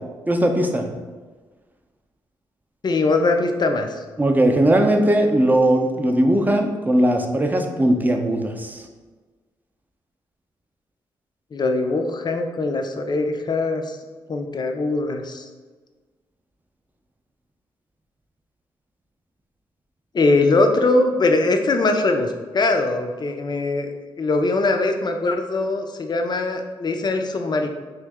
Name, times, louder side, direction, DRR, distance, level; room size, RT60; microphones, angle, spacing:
voice 1, 0.3-0.8 4.2-8.8, right 1 dB, 15° right, 3 dB, 0.5 m, -19 dB
voice 2, 2.8-4.0 11.5-14.0 14.3-15.5 20.1-27.7, left 2 dB, 40° left, 5 dB, 0.5 m, -21 dB
3.1 x 2.6 x 3.5 m, 1.4 s
supercardioid pair, 45°, 11 cm